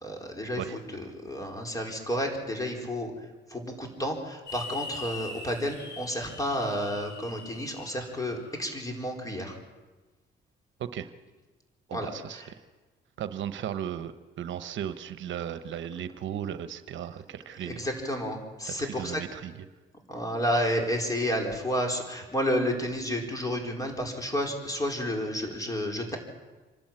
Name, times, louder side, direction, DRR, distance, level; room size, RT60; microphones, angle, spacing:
voice 1, 0.0-9.6 11.9-12.5 17.6-19.2 20.1-26.2, equal, 15° left, 2 dB, 4.5 m, -31 dB
sound 1, 4.5-8.6, left 3 dB, 60° left, 7.2 m, -42 dB
voice 2, 11.9-12.4 13.2-17.9 18.7-19.6, right 9 dB, 70° right, 12 dB, 1.0 m, -36 dB
26.0 x 12.0 x 9.0 m, 1.2 s
cardioid pair, 90°, 20 cm